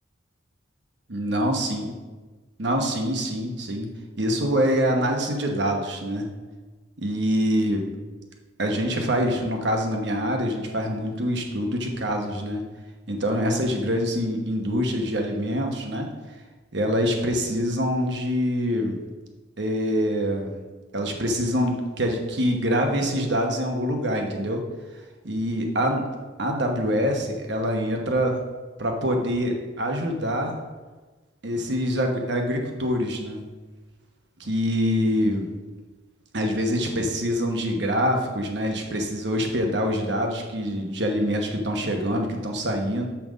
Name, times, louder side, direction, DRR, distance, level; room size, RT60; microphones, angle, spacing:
voice 1, 1.1-1.8 2.6-3.9 4.2-6.3 7.0-7.9 8.6-12.6 13.1-16.1 16.7-19.0 19.6-20.6 20.9-24.6 25.2-26.1 26.4-28.4 28.8-30.6 31.4-33.4 34.4-35.5 36.3-43.1, equal, 60° right, 3 dB, 1.1 m, -25 dB
5.8 x 5.4 x 6.3 m, 1.3 s
head